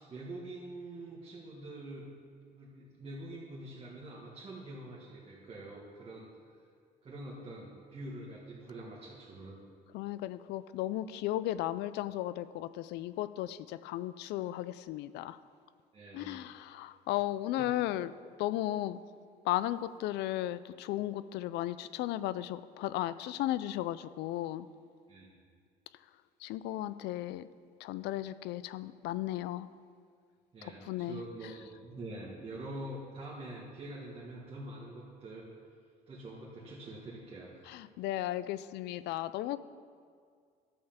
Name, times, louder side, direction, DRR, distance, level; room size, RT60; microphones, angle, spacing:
voice 1, 0.0-2.1 2.5-6.3 7.0-9.6 15.9-16.4 17.6-17.7 25.1-25.4 30.5-35.5 36.1-37.5, right 1 dB, 35° right, -6 dB, 2.0 m, -45 dB
voice 2, 9.9-15.4 16.1-18.1 18.4-19.0 19.4-24.7 26.4-27.5 27.8-29.7 30.6-31.2 37.7-39.6, left 14 dB, 85° left, 15 dB, 0.4 m, -35 dB
11.5 x 5.5 x 7.3 m, 2.1 s
cardioid pair, 110°, 17 cm